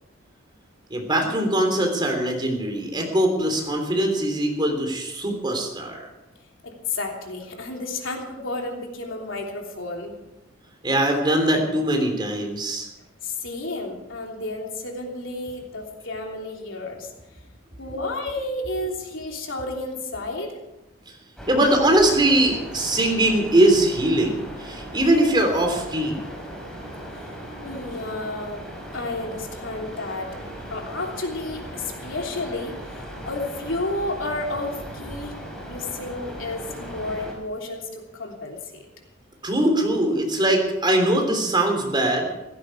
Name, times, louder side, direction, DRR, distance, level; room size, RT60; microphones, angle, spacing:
voice 1, 0.9-6.0 10.8-12.9 17.8-17.9 21.5-26.2 39.4-42.3, right 1 dB, 25° right, 3 dB, 3.3 m, -21 dB
voice 2, 6.6-10.2 13.2-17.1 17.8-20.6 27.2-27.3 27.6-28.6 28.9-30.3 30.7-38.9, left 2 dB, 85° left, 1 dB, 3.2 m, -31 dB
sound 1, 21.4-37.3, equal, 5° left, 4.9 m, -38 dB
16.0 x 15.0 x 4.8 m, 0.94 s
head